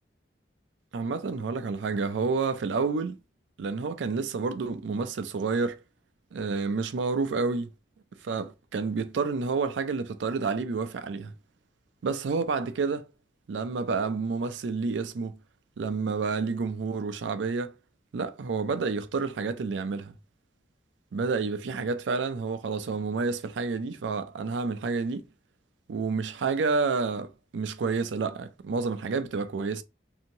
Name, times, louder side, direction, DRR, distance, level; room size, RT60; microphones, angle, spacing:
voice 1, 0.9-3.2 3.6-5.8 6.3-7.7 8.2-11.3 12.0-13.1 13.5-15.4 15.8-17.7 18.1-20.1 21.1-25.2 25.9-29.8, right 4 dB, 85° right, 0.4 m, -29 dB
2.8 x 2.6 x 2.7 m
head